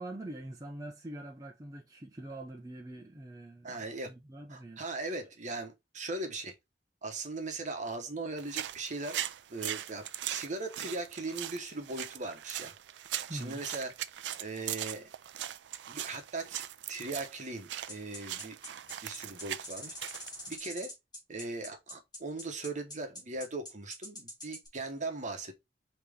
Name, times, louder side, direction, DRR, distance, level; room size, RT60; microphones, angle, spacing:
voice 1, 0.0-4.8 13.3-13.6, right 1 dB, 20° right, 0.6 m, -44 dB
voice 2, 3.6-4.1 4.5-6.5 7.0-9.2 9.5-12.7 13.3-13.9 14.4-15.1 15.9-16.6 16.9-18.6 19.0-19.9 20.5-20.9 21.3-25.5, right 3 dB, 45° right, 1.0 m, -39 dB
sound 1, 8.4-20.6, right 12 dB, 85° right, 0.4 m, -40 dB
sound 2, 17.9-24.7, equal, 25° left, 2.5 m, -44 dB
4.9 x 3.0 x 3.4 m
head